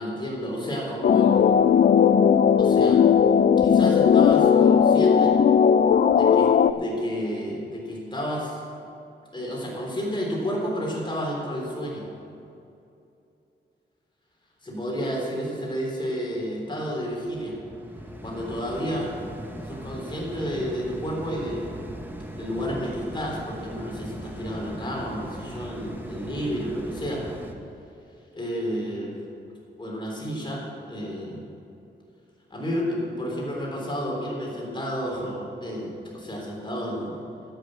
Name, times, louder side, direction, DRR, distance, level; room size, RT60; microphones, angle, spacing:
voice 1, 0.0-1.3 2.6-3.0 3.6-5.4 6.1-8.6 9.3-12.1 14.6-17.6 18.2-19.1 19.6-21.8 22.3-27.2 28.3-29.2 29.8-31.5 32.5-37.2, equal, 25° left, -3 dB, 3.6 m, -31 dB
sound 1, 1.0-6.7, left 7 dB, 50° left, 0.4 m, -17 dB
sound 2, 16.3-27.5, equal, 10° right, 1.0 m, -39 dB
11.0 x 8.8 x 7.7 m, 2.7 s
wide cardioid pair, 130°, 19 cm